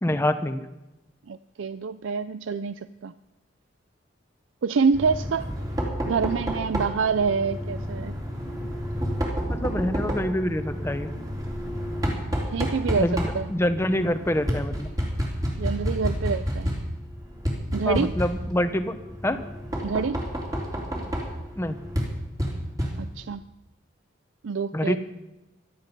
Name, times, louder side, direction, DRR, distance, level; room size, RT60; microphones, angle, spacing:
voice 1, 0.0-0.6 9.5-11.1 13.0-13.1 13.5-14.9 17.9-19.0 19.2-19.4 21.6-21.8 24.7-25.0, left 1 dB, 15° left, 9 dB, 0.9 m, -25 dB
voice 2, 1.3-3.1 4.6-5.5 6.1-8.1 12.5-13.1 13.3-13.5 15.6-16.7 17.7-18.2 19.8-20.2 23.0-23.4 24.4-25.0, right 5 dB, 80° right, 14 dB, 0.4 m, -26 dB
Knock, 4.9-23.4, equal, 20° right, 3.4 m, -30 dB
16.5 x 12.5 x 5.3 m, 0.98 s
head